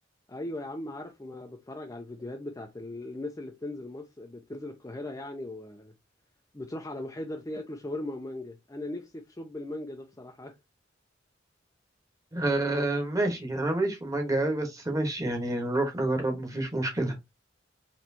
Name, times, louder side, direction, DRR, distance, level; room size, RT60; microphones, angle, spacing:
voice 1, 0.3-5.9 6.5-10.6, left 1 dB, 15° left, 0.5 m, -38 dB
voice 2, 12.3-17.1, right 2 dB, 20° right, 1.3 m, -28 dB
4.3 x 3.1 x 2.8 m
head